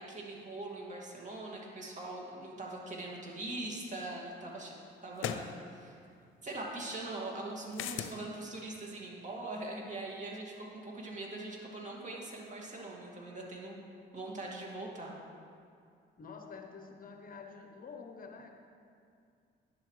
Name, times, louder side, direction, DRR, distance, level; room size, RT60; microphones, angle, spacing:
voice 1, 0.0-4.7 5.0-6.0 6.4-13.8 14.1-15.2, right 2 dB, 40° right, -2 dB, 2.3 m, -42 dB
sound 1, 3.8-3.9 5.2-5.5 7.7-8.2, left 10 dB, 85° left, 0.5 m, -36 dB
voice 2, 16.2-18.6, left 5 dB, 45° left, 5 dB, 0.9 m, -48 dB
11.0 x 10.5 x 3.3 m, 2.4 s
cardioid pair, 90°, 20 cm